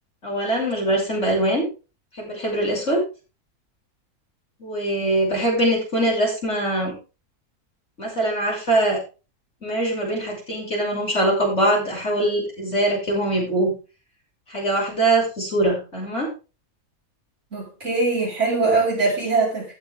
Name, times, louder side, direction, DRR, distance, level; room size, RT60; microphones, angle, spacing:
voice 1, 0.2-1.6 2.1-3.0 4.6-6.9 8.0-9.0 9.6-13.7 14.5-16.3, right 1 dB, 50° left, -3 dB, 6.3 m, -22 dB
voice 2, 17.5-19.8, right 3 dB, 50° right, -3 dB, 4.9 m, -22 dB
16.5 x 6.9 x 3.5 m, 0.32 s
omnidirectional pair, 1.6 m